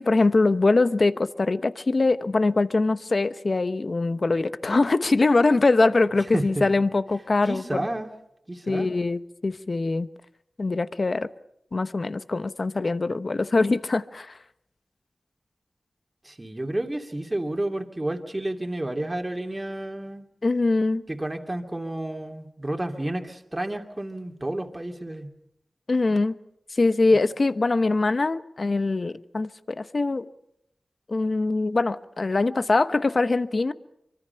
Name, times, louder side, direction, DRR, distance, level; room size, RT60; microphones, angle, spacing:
voice 1, 0.0-7.9 8.7-10.1 10.6-11.3 11.7-14.3 20.4-21.0 25.9-26.3 26.7-30.3 31.1-33.7, left 3 dB, 55° left, 1.0 m, -23 dB
voice 2, 6.3-6.7 7.5-8.1 8.5-8.9 16.2-20.2 21.1-25.3, right 1 dB, 25° right, 2.7 m, -31 dB
25.0 x 24.5 x 5.8 m
cardioid pair, 50°, 0 cm